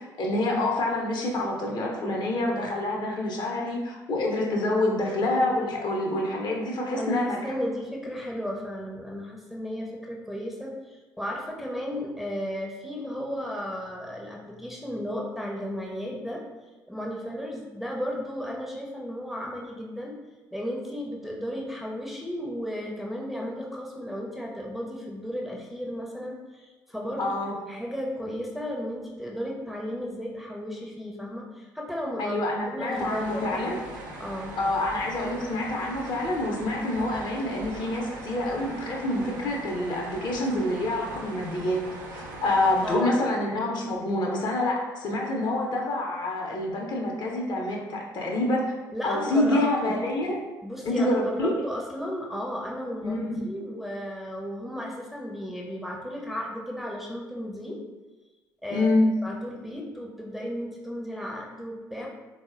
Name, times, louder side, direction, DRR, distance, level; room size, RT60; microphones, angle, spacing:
voice 1, 0.0-7.4 27.2-27.5 32.2-33.8 34.6-41.8 42.1-48.8 49.0-50.4 50.8-51.5 53.0-53.5 58.7-59.1, left 1 dB, 45° left, -1 dB, 0.6 m, -27 dB
voice 2, 7.0-16.4 16.9-20.1 20.5-27.3 27.7-32.4 32.7-33.8 34.2-34.6 42.8-43.2 48.9-50.0 50.6-57.8 58.6-58.9 59.2-62.1, equal, ahead, -2 dB, 0.5 m, -34 dB
sound 1, 32.9-43.0, right 1 dB, 80° right, 0.4 m, -40 dB
3.6 x 2.0 x 2.4 m, 1.2 s
figure-of-eight pair, 50°, 10 cm